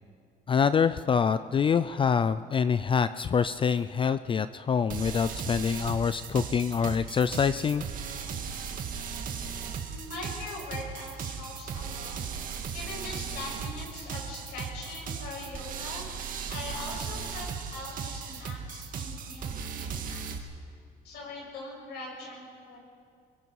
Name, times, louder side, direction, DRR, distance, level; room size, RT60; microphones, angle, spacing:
voice 1, 0.5-7.8, left 6 dB, 30° left, 14 dB, 0.4 m, -25 dB
sound 1, 4.9-20.4, right 6 dB, 55° right, 1.9 m, -37 dB
voice 2, 9.9-12.2 12.5-16.1 16.5-20.2 21.0-22.8, left 2 dB, 75° left, -2 dB, 7.6 m, -41 dB
25.5 x 22.5 x 4.8 m, 2.3 s
cardioid pair, 110°, 17 cm